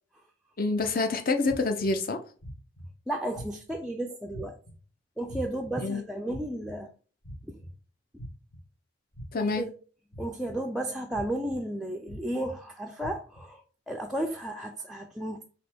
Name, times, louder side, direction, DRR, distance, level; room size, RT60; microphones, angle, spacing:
voice 1, 0.6-2.2 5.8-6.0 9.3-9.7, left 3 dB, 45° left, 0.6 m, -27 dB
sound 1, 0.8-0.9 1.5-1.9 2.4-2.9 3.3-3.8 4.3-4.7 5.3-5.7 6.3-6.7 7.2-7.7 8.2-8.6 9.1-9.6 10.1-10.5 11.1-11.5 12.1-12.5 13.0-13.4, equal, 70° left, 1.4 m, -42 dB
voice 2, 3.1-4.6 5.2-6.9 7.5-7.6 9.4-9.7 10.2-13.6 13.9-15.4, right 1 dB, ahead, 0.3 m, -33 dB
4.2 x 2.9 x 4.4 m
head